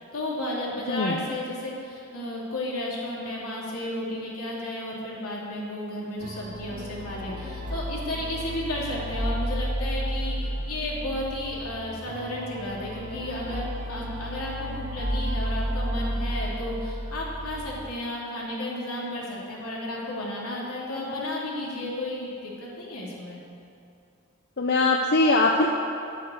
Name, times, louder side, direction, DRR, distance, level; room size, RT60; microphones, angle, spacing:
voice 1, 0.1-23.4, left 1 dB, 80° left, -5 dB, 3.2 m, -33 dB
sound 1, 6.2-17.9, equal, 35° right, 0.9 m, -32 dB
voice 2, 24.6-25.7, left 2 dB, 50° left, 1 dB, 0.7 m, -21 dB
10.0 x 8.3 x 7.9 m, 2.6 s
head